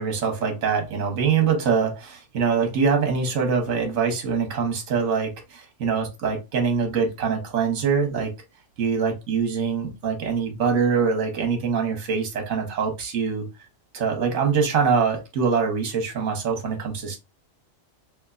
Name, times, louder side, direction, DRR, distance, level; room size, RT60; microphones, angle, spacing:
voice 1, 0.0-8.3 8.8-13.5 13.9-17.2, right 6 dB, 70° right, 1.3 m, -24 dB
3.5 x 3.0 x 2.3 m
omnidirectional pair, 1.4 m